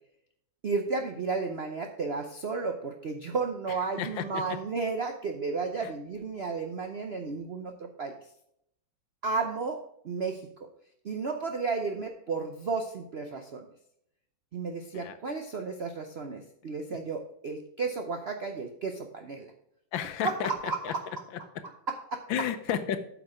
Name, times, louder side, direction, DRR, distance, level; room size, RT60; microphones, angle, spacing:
voice 1, 0.6-8.1 9.2-10.7 11.0-13.7 14.5-19.5 20.2-21.0 21.6-22.2, right 4 dB, 65° right, 5 dB, 0.6 m, -33 dB
voice 2, 3.7-4.4 5.8-5.9 14.9-15.2 19.9-20.9 22.3-23.0, left 9 dB, 80° left, 10 dB, 1.5 m, -32 dB
8.4 x 5.9 x 4.9 m, 0.75 s
omnidirectional pair, 2.1 m